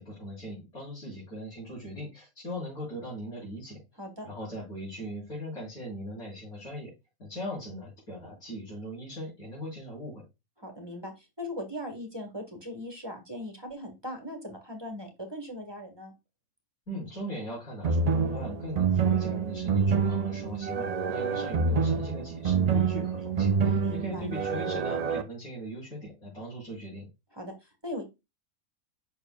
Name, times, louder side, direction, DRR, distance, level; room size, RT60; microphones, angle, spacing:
voice 1, 0.0-3.8 4.2-6.9 7.2-10.2 16.9-27.1, equal, 90° left, -9 dB, 4.8 m, -39 dB
voice 2, 10.6-16.1 23.7-24.2 27.3-28.0, left 1 dB, 20° right, 4 dB, 1.5 m, -39 dB
sound 1, 17.8-25.2, right 5 dB, 75° right, 0.3 m, -27 dB
7.1 x 6.3 x 2.3 m, 0.23 s
omnidirectional pair, 1.5 m